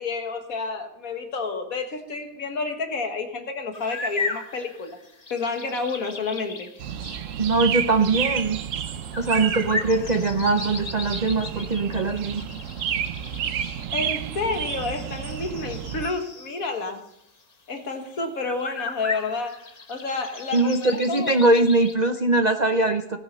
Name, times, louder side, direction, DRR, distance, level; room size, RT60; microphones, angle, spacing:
voice 1, 0.0-5.0 5.3-6.7 13.9-17.0 17.7-21.3, left 4 dB, 60° left, 1.9 m, -30 dB
sound 1, 3.7-16.6 17.1-17.2 17.7-17.8 18.0-21.9, left 3 dB, 30° left, 1.0 m, -37 dB
sound 2, 6.8-16.1, right 9 dB, 60° right, 1.0 m, -31 dB
voice 2, 7.4-8.6 9.2-12.4 20.5-23.2, right 3 dB, 45° right, 0.5 m, -21 dB
18.0 x 10.5 x 5.5 m
omnidirectional pair, 1.7 m